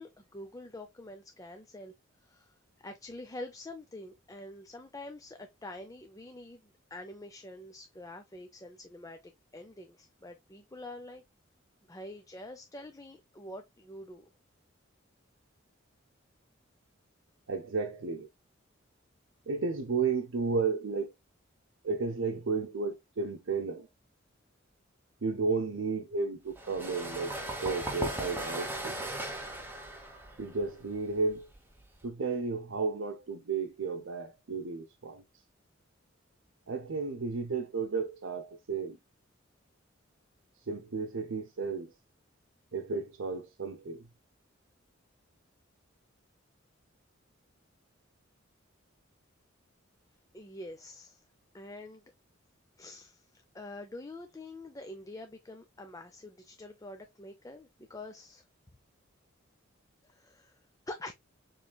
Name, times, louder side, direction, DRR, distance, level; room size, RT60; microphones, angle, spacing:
voice 1, 0.0-1.9 2.2-11.2 11.9-14.3 50.3-51.2 51.5-52.0 52.8-58.4 60.0-60.6 60.9-61.1, left 1 dB, 15° left, 0.5 m, -46 dB
voice 2, 17.5-18.3 19.5-21.1 21.8-23.9 25.2-29.0 30.4-31.5 32.0-35.2 36.7-39.0 40.7-41.9 42.7-44.1, right 4 dB, 70° right, 0.7 m, -33 dB
sound 1, 26.5-32.0, right 1 dB, 10° right, 1.2 m, -38 dB
6.9 x 3.2 x 2.3 m
head